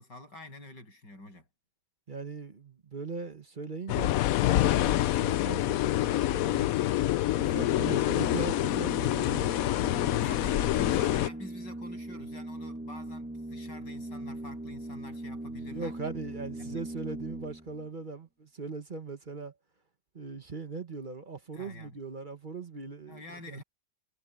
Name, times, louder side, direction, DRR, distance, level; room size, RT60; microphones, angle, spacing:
voice 1, 0.0-1.5 10.0-15.9 16.6-16.8 21.5-21.9 23.1-23.6, left 1 dB, 85° left, 8.5 m, -47 dB
voice 2, 2.1-4.2 4.6-6.8 7.5-9.5 15.7-19.5 20.1-23.6, right 4 dB, 30° right, 1.2 m, -40 dB
sound 1, 3.9-11.3, left 14 dB, 70° left, 0.9 m, -26 dB
Organ, 7.2-17.9, right 1 dB, 5° right, 3.2 m, -40 dB
omnidirectional pair, 1.8 m